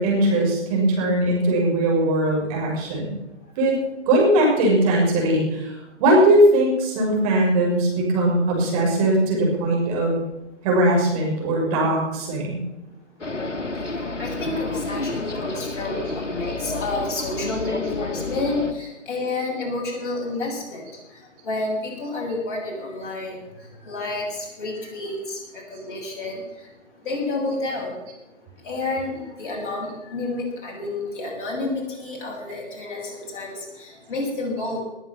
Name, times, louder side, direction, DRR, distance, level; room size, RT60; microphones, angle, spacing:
voice 1, 0.0-3.2 3.6-3.7 4.1-10.2 10.6-12.6, right 1 dB, 30° right, -1 dB, 6.0 m, -20 dB
sound 1, 13.2-18.7, left 3 dB, 85° left, 1.7 m, -29 dB
voice 2, 14.2-20.8 21.5-23.4 23.9-25.4 25.7-26.4 27.1-27.9 28.6-34.8, left 2 dB, 45° left, -2 dB, 7.2 m, -29 dB
19.5 x 9.1 x 7.4 m, 0.96 s
figure-of-eight pair, 135°, 36 cm